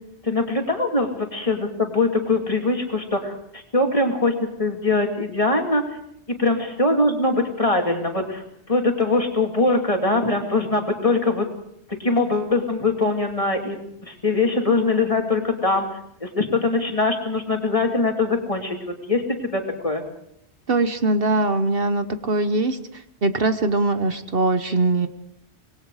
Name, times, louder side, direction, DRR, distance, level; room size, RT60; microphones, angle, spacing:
voice 1, 0.2-6.0 6.4-11.5 12.0-18.8 19.1-20.0, left 2 dB, 30° left, 3 dB, 2.8 m, -22 dB
voice 2, 20.7-25.1, right 2 dB, 60° right, 10 dB, 1.3 m, -22 dB
25.5 x 20.5 x 4.9 m, 0.72 s
omnidirectional pair, 1.1 m